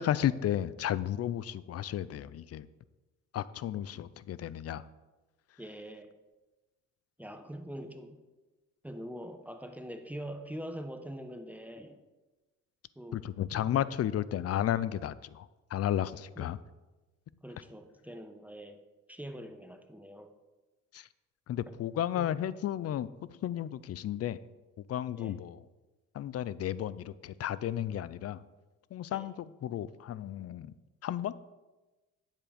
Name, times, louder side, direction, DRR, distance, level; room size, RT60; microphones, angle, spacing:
voice 1, 0.0-2.7 3.3-4.8 13.1-16.6 20.9-21.1 21.5-24.4 24.8-25.6 26.1-28.4 28.9-30.7 31.0-31.3, left 11 dB, 55° left, 17 dB, 0.5 m, -33 dB
voice 2, 5.6-6.1 7.2-8.2 8.8-12.0 13.0-13.3 13.5-13.9 16.4-16.6 17.4-18.8 19.1-20.3 22.1-22.3 25.2-25.4 29.1-29.3, equal, 5° right, 7 dB, 0.9 m, -44 dB
9.9 x 7.3 x 5.1 m, 1.2 s
cardioid pair, 90°, 30 cm